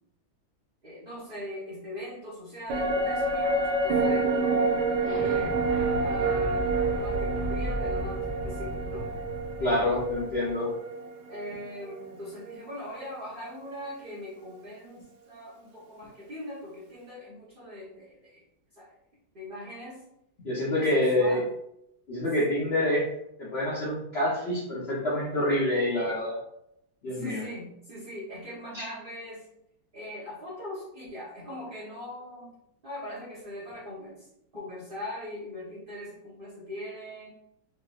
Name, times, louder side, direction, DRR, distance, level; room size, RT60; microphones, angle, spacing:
voice 1, 0.8-5.6 6.0-9.1 11.3-18.4 18.7-18.9 19.3-20.0 20.7-21.4 27.0-29.5 29.9-32.6 32.8-34.3 34.5-37.3, left 1 dB, 45° right, -9 dB, 0.7 m, -40 dB
sound 1, 2.7-12.2 12.5-12.6, right 3 dB, 70° right, 1.0 m, -28 dB
Explosion, 5.0-10.5, left 1 dB, 5° right, 1.1 m, -36 dB
voice 2, 9.6-10.7 20.4-21.4 22.1-23.1 23.4-26.4 27.0-27.4 28.7-28.8, left 1 dB, 90° left, -7 dB, 0.5 m, -27 dB
3.1 x 3.1 x 2.3 m, 0.79 s
omnidirectional pair, 2.2 m